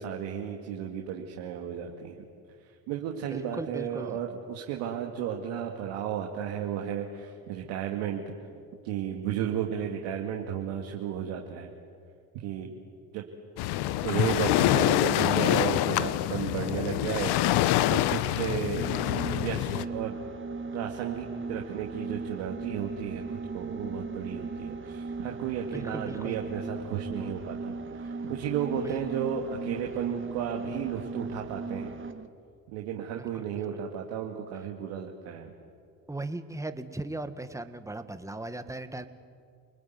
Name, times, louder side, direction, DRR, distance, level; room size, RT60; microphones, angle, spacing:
voice 1, 0.0-2.3 2.6-8.2 8.8-11.7 12.3-12.8 13.1-13.2 14.0-17.6 17.9-18.9 19.2-20.2 20.7-31.9 32.7-35.5, right 8 dB, 80° right, 1 dB, 2.3 m, -33 dB
voice 2, 3.3-4.2 25.7-26.4 28.8-29.0 33.2-33.6 36.1-39.1, right 2 dB, 10° right, 9 dB, 1.8 m, -38 dB
Waves surf, 13.6-19.8, left 14 dB, 70° left, 1.0 m, -26 dB
sound 1, 18.8-32.3, right 3 dB, 30° right, 1.6 m, -38 dB
29.0 x 20.5 x 9.5 m, 2.2 s
supercardioid pair, 75°, 40 cm